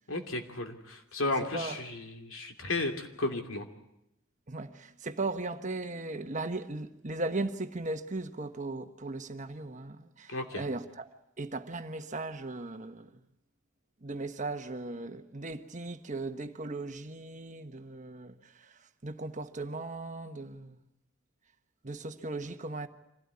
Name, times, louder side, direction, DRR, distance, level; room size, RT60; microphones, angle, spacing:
voice 1, 0.1-3.6 10.3-10.6, left 2 dB, 80° left, 2.8 m, -34 dB
voice 2, 1.2-1.8 4.5-11.1 11.4-13.1 14.0-20.8 21.8-22.9, right 2 dB, 35° right, 1.2 m, -37 dB
25.5 x 16.5 x 9.7 m
head